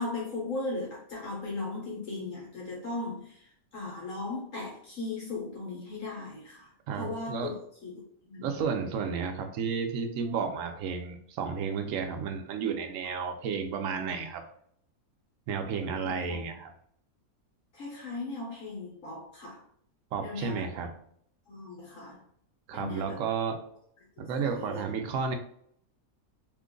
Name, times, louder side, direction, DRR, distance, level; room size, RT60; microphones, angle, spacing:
voice 1, 0.0-6.7 7.0-8.0 8.3-8.6 13.2-13.3 16.3-16.4 17.7-19.6 20.2-20.7 21.5-22.2 22.7-23.2 24.4-24.8, left 3 dB, 65° left, -4 dB, 1.3 m, -37 dB
voice 2, 6.9-7.5 8.4-14.4 15.5-16.7 20.1-20.9 22.7-23.6 24.2-25.4, right 6 dB, 70° right, 5 dB, 0.9 m, -32 dB
2.9 x 2.4 x 3.7 m, 0.66 s
omnidirectional pair, 1.5 m